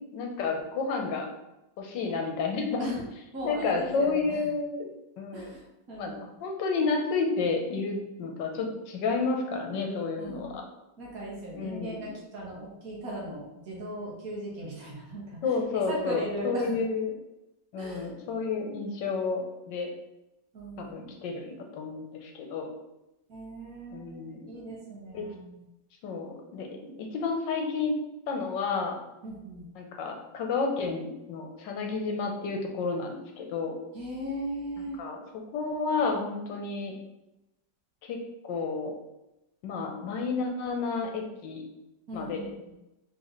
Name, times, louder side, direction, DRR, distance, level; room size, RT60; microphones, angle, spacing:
voice 1, 0.1-1.3 1.8-2.9 3.4-4.9 5.2-5.5 6.0-10.6 11.5-12.0 15.4-17.1 17.7-19.9 20.8-22.7 23.9-24.7 25.1-25.3 26.0-27.9 28.3-29.0 29.8-33.8 35.0-35.2 35.5-36.9 38.0-38.2 38.4-38.9 39.6-41.6 42.1-42.5, left 4 dB, 80° left, 2 dB, 1.4 m, -31 dB
voice 2, 3.3-4.5 5.3-6.2 10.2-10.6 11.0-16.8 17.8-18.1 20.5-21.2 23.3-25.6 29.2-29.6 33.9-35.0 42.1-42.7, equal, 55° right, -4 dB, 1.5 m, -38 dB
3.9 x 3.1 x 4.0 m, 0.93 s
omnidirectional pair, 2.0 m